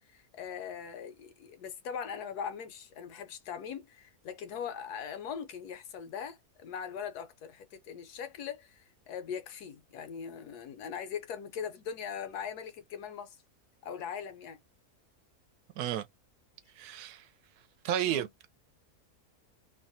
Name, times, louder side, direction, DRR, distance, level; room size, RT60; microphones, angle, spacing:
voice 1, 0.0-13.4 13.8-14.6 18.0-18.3, left 7 dB, 90° left, 1.3 m, -41 dB
voice 2, 16.8-17.3 17.8-18.5, right 11 dB, 85° right, 1.1 m, -32 dB
3.0 x 2.1 x 2.6 m
omnidirectional pair, 1.6 m